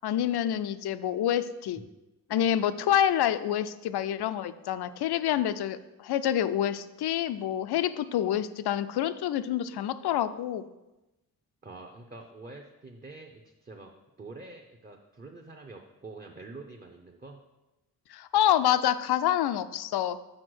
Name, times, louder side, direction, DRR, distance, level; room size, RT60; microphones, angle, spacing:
voice 1, 0.0-1.8 2.3-10.6 18.1-20.2, left 10 dB, 85° left, 13 dB, 0.5 m, -27 dB
voice 2, 11.6-13.9 14.2-17.4, right 3 dB, 25° right, 1 dB, 0.7 m, -46 dB
6.4 x 4.5 x 6.2 m, 1.0 s
wide cardioid pair, 110°, 38 cm